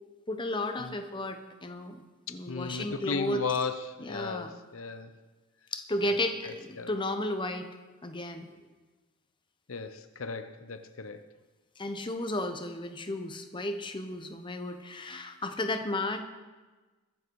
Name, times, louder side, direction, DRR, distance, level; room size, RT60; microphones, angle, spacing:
voice 1, 0.3-2.0 2.3-3.4 4.0-4.5 5.7-7.7 8.0-8.6 11.8-16.2, left 1 dB, 20° left, 7 dB, 0.9 m, -33 dB
voice 2, 2.3-5.1 6.4-6.9 9.7-11.2, left 5 dB, 70° left, 10 dB, 0.7 m, -35 dB
22.0 x 7.7 x 4.7 m, 1.3 s
head